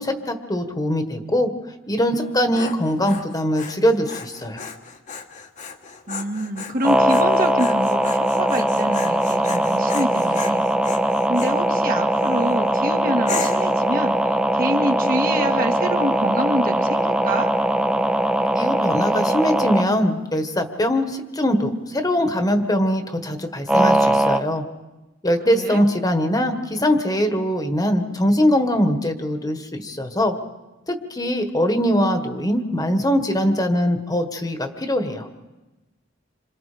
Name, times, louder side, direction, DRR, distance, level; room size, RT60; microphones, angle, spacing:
voice 1, 0.0-1.5 1.9-4.7 18.5-24.6 25.2-30.3 30.9-35.3, equal, 20° left, 7 dB, 1.6 m, -22 dB
Dog, 2.2-11.6 12.1-12.6 13.3-13.8, left 5 dB, 40° left, 1.4 m, -35 dB
voice 2, 6.1-10.7 11.0-17.5 25.5-25.8, right 1 dB, 50° right, 4 dB, 1.9 m, -27 dB
sound 1, 6.8-19.9 23.7-24.4, right 1 dB, 5° right, 0.9 m, -20 dB
27.0 x 27.0 x 5.1 m, 1.1 s
head